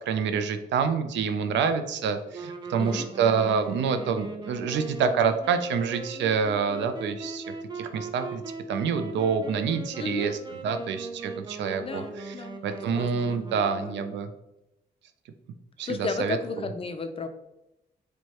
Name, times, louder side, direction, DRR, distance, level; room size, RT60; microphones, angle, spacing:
voice 1, 0.1-7.4 7.8-8.4 8.7-10.4 10.6-12.3 12.6-14.3 15.8-16.4, right 6 dB, 85° right, 8 dB, 0.4 m, -27 dB
sound 1, 2.3-14.2, right 3 dB, 25° right, 0.5 m, -40 dB
voice 2, 10.0-10.3 11.8-12.6 12.9-14.0 15.8-17.3, left 4 dB, 30° left, 8 dB, 0.4 m, -34 dB
4.5 x 2.2 x 2.8 m, 0.89 s
cardioid pair, 90°, 18 cm